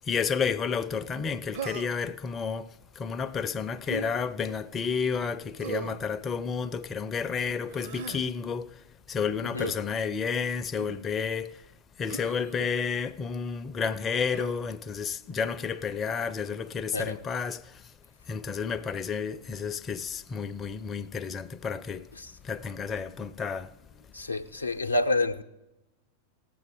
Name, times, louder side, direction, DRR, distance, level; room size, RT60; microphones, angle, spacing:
voice 1, 0.1-11.6 12.0-17.9 18.3-22.1 22.4-24.0, left 6 dB, 25° left, 0.4 m, -31 dB
Human voice, 1.5-2.1 3.8-4.1 5.6-6.0 7.6-8.2 9.6-9.8 10.7-11.0 12.1-12.7 14.3-14.6, right 5 dB, 55° right, 0.6 m, -38 dB
voice 2, 24.1-25.4, left 2 dB, 85° left, 0.6 m, -28 dB
18.5 x 7.6 x 3.8 m
figure-of-eight pair, 90°, 0 cm